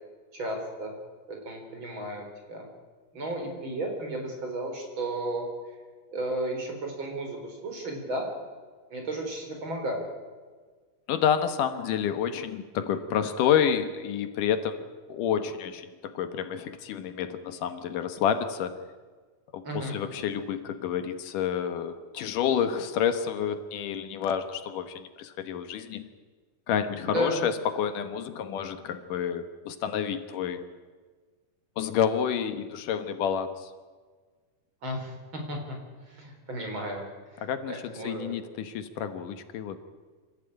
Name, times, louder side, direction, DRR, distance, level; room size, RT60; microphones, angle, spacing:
voice 1, 0.3-0.9 1.3-2.2 2.5-2.7 3.1-5.5 6.1-8.3 8.9-10.1 19.6-20.0 27.0-27.4 34.8-35.8 36.0-37.0 37.3-38.3, right 1 dB, 35° right, 2 dB, 4.7 m, -33 dB
voice 2, 11.1-14.8 15.1-18.7 19.5-26.1 26.7-30.6 31.8-33.7 37.4-39.8, left 8 dB, 75° left, 10 dB, 2.8 m, -29 dB
26.5 x 15.0 x 9.0 m, 1.5 s
omnidirectional pair, 3.8 m